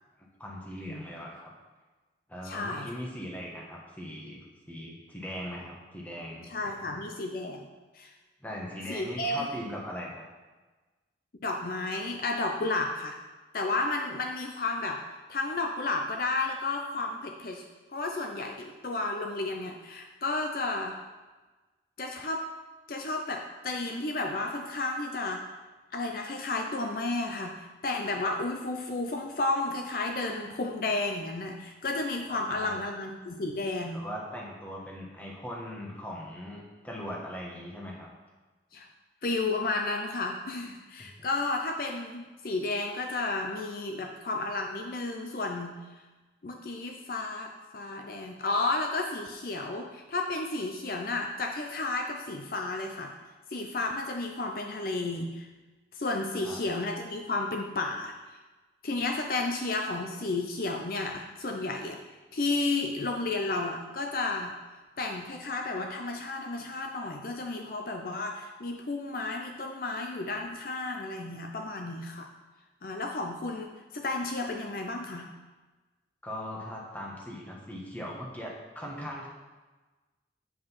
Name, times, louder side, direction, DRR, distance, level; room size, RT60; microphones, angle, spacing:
voice 1, 0.4-1.5 2.3-6.7 8.4-10.2 32.3-32.8 33.9-38.1 41.0-41.1 56.4-56.6 76.2-79.3, equal, 10° left, -3 dB, 1.4 m, -40 dB
voice 2, 2.4-2.9 6.5-7.7 7.9-8.1 8.9-9.5 11.4-13.2 13.5-15.0 15.3-17.6 17.9-21.0 22.0-22.4 22.9-25.4 25.9-34.1 38.7-38.9 39.2-45.7 46.4-53.1 53.5-55.5 55.9-58.4 58.8-64.5 65.0-72.3 72.8-75.3, left 2 dB, 50° left, 3 dB, 0.5 m, -32 dB
8.2 x 5.1 x 5.7 m, 1.2 s
head